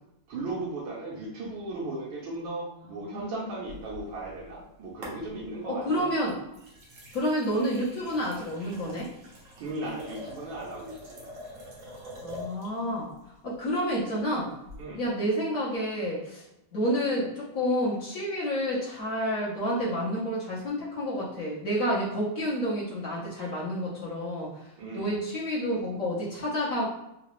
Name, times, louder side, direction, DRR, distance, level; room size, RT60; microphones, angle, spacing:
voice 1, 0.3-6.1 9.6-11.2 14.8-15.0 24.8-25.2, right 2 dB, 75° right, -7 dB, 1.5 m, -36 dB
voice 2, 3.0-3.3 5.7-6.4 7.1-9.1 12.2-13.1 13.4-14.5 14.9-16.4 16.7-24.7 24.9-26.9, equal, 50° left, -7 dB, 1.2 m, -29 dB
sound 1, 3.6-4.6 5.0-5.7 6.2-12.8 14.7-14.8, equal, 55° right, 0.9 m, -45 dB
3.9 x 2.4 x 3.0 m, 0.88 s
omnidirectional pair, 2.2 m